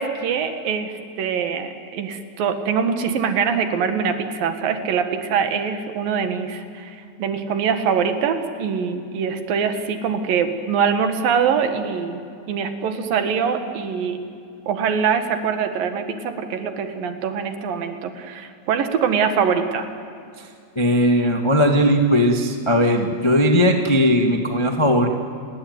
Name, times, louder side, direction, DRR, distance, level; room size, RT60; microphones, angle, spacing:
voice 1, 0.0-12.2 12.5-14.3 14.7-19.9, right 6 dB, 70° right, 8 dB, 3.4 m, -23 dB
voice 2, 20.7-25.1, equal, 35° left, 4 dB, 0.4 m, -18 dB
29.5 x 20.0 x 9.5 m, 2.4 s
omnidirectional pair, 4.2 m